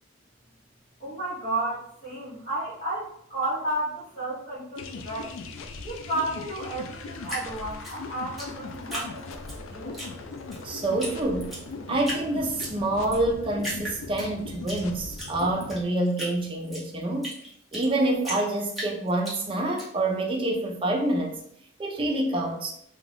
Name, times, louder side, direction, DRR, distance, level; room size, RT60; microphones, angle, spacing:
voice 1, 1.0-5.3 5.8-9.3 9.6-10.0, right 1 dB, 35° left, -11 dB, 1.0 m, -32 dB
sound 1, 4.7-15.8, left 3 dB, 80° left, 0.3 m, -39 dB
Drip, 7.2-9.6 9.9-10.6 11.0-11.1 11.4-12.2 12.6-13.2 13.6-14.8 15.1-17.9 18.2-19.8, equal, ahead, 0.7 m, -35 dB
voice 2, 10.6-11.6 11.9-17.4 17.7-21.4 21.8-22.7, right 1 dB, 25° right, 1 dB, 0.4 m, -27 dB
2.4 x 2.3 x 3.3 m, 0.70 s
head